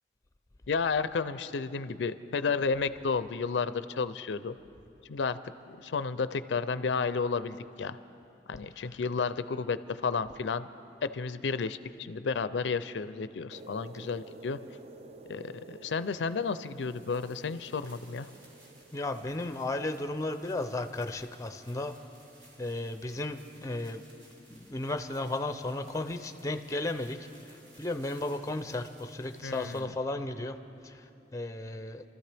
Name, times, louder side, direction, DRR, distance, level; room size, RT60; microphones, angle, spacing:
voice 1, 0.7-4.5 5.1-5.4 5.7-8.0 8.5-10.7 11.0-14.6 15.3-18.3 29.4-29.9, left 5 dB, 85° left, 13 dB, 0.5 m, -32 dB
sound 1, 13.5-19.9, right 2 dB, 35° right, 0.5 m, -51 dB
sound 2, 16.7-29.8, right 1 dB, 70° right, 3.8 m, -59 dB
voice 2, 18.9-21.9 22.6-24.0 24.5-30.6 30.8-32.0, left 2 dB, 20° left, 8 dB, 0.5 m, -34 dB
27.5 x 13.5 x 3.4 m, 2.7 s
head